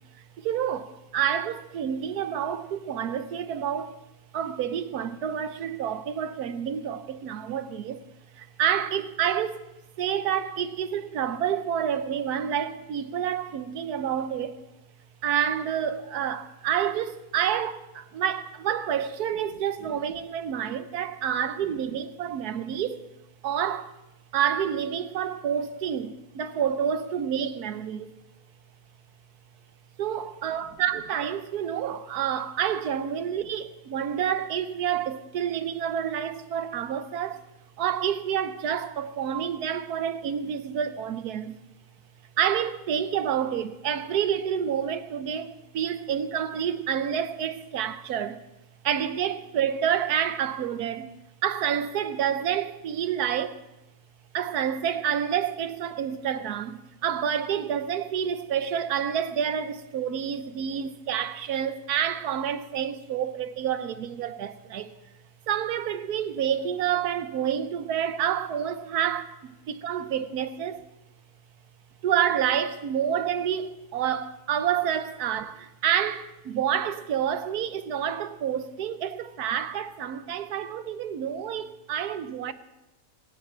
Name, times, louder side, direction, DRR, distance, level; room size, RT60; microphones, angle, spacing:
voice 1, 0.4-4.0 4.3-8.0 8.4-9.6 10.0-14.6 15.2-23.0 23.4-24.0 24.3-28.1 30.0-37.4 37.8-41.6 42.4-48.4 48.8-51.1 51.4-53.6 54.3-64.9 65.5-70.8 72.0-82.5, right 9 dB, 85° right, 1.4 m, -28 dB
27.5 x 9.4 x 4.4 m
omnidirectional pair, 1.6 m